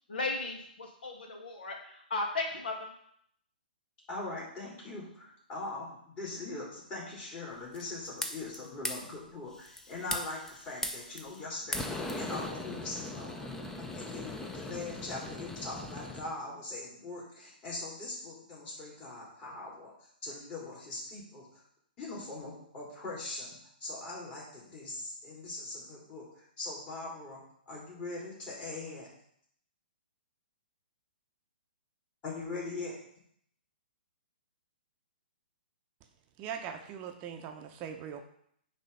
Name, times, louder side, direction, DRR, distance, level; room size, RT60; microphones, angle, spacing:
voice 1, 0.1-2.9, left 3 dB, 65° left, 1 dB, 2.0 m, -35 dB
voice 2, 4.1-19.9 20.2-21.6 22.0-23.5 23.8-29.1 32.2-32.9, left 2 dB, 25° left, -5 dB, 3.3 m, -41 dB
sound 1, 7.7-8.6 8.8-9.1 9.6-11.4 11.7-16.3, left 2 dB, 10° left, 0.7 m, -39 dB
voice 3, 36.4-38.2, right 8 dB, 30° right, 5 dB, 0.7 m, -41 dB
9.1 x 3.4 x 5.5 m, 0.69 s
hypercardioid pair, 125°, 5 cm